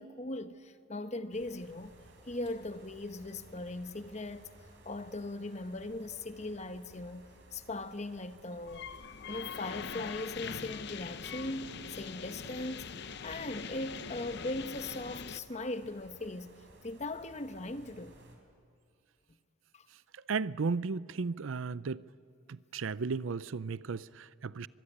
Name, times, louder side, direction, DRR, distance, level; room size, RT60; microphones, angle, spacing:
voice 1, 0.0-1.9 2.3-4.5 4.8-8.9 9.3-16.5 16.8-18.2 19.7-19.9, left 2 dB, 35° left, 1.0 m, -39 dB
sound 1, 1.3-18.4, right 1 dB, 60° right, 4.6 m, -58 dB
sound 2, 8.7-15.4, left 6 dB, 55° left, 0.7 m, -43 dB
voice 2, 20.3-22.0 22.5-24.7, right 4 dB, 75° right, 0.6 m, -35 dB
24.5 x 22.5 x 10.0 m
head